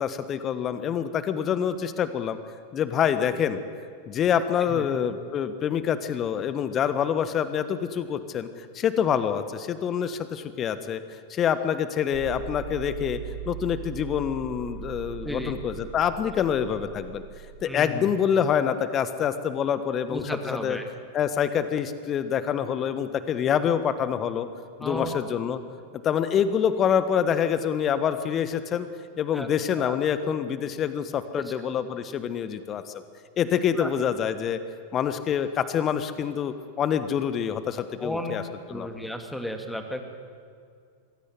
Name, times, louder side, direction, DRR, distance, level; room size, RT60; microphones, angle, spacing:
voice 1, 0.0-2.4 2.7-3.6 4.1-11.0 11.3-13.2 13.5-17.2 17.6-20.2 20.5-20.8 21.1-24.5 24.8-25.6 26.0-28.9 29.2-33.0 33.4-34.6 34.9-38.4 38.7-38.9, left 8 dB, 30° left, 12 dB, 1.3 m, -26 dB
sound 1, 12.1-17.6, right 11 dB, 45° right, 1.7 m, -40 dB
voice 2, 17.6-18.1 20.1-20.8 24.8-25.2 29.3-30.0 31.3-31.4 33.8-33.9 38.0-38.3 38.7-40.0, equal, 5° left, 6 dB, 2.4 m, -33 dB
23.5 x 17.0 x 9.8 m, 2.2 s
figure-of-eight pair, 90°, 0 cm